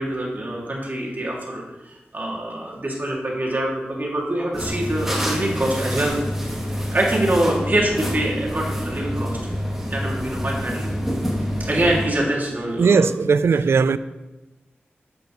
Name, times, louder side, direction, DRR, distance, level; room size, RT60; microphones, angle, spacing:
voice 1, 0.0-6.2 6.9-9.4 9.9-10.9 11.6-13.1, right 1 dB, 45° right, 2.2 m, -24 dB
sound 1, 4.5-12.1, equal, 5° right, 2.4 m, -27 dB
voice 2, 12.8-14.0, right 5 dB, 80° right, 0.3 m, -18 dB
9.0 x 7.8 x 3.0 m
cardioid pair, 50°, 4 cm